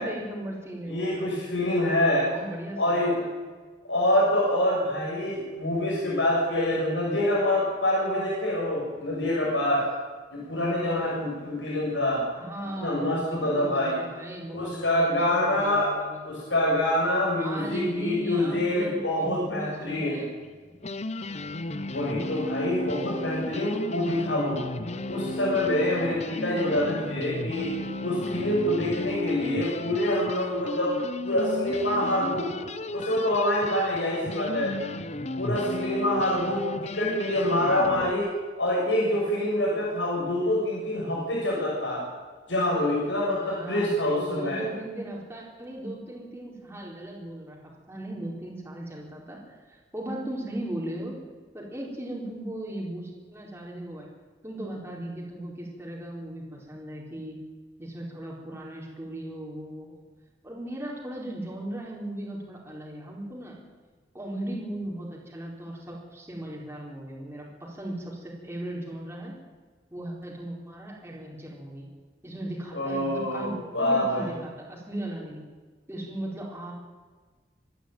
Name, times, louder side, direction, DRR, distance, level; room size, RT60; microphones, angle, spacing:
voice 1, 0.0-1.2 2.3-3.3 12.4-16.2 17.4-20.3 43.5-51.2 51.5-54.1 54.4-57.4 57.8-60.0 60.4-63.6 64.1-69.3 69.9-71.9 72.2-75.4 75.9-76.7, right 1 dB, 15° right, -3 dB, 4.3 m, -37 dB
voice 2, 0.9-2.3 2.8-3.2 3.9-9.8 10.3-12.2 12.8-14.0 14.5-15.9 16.2-20.2 21.9-24.7 25.1-27.7 28.0-31.0 31.2-32.5 32.9-34.7 35.4-38.3 38.6-42.0 42.5-44.6 72.7-74.3, left 1 dB, 90° left, -5 dB, 7.2 m, -26 dB
sound 1, 20.4-20.5 20.8-38.1, left 2 dB, 40° left, 0.9 m, -34 dB
25.5 x 11.5 x 9.2 m, 1.4 s
head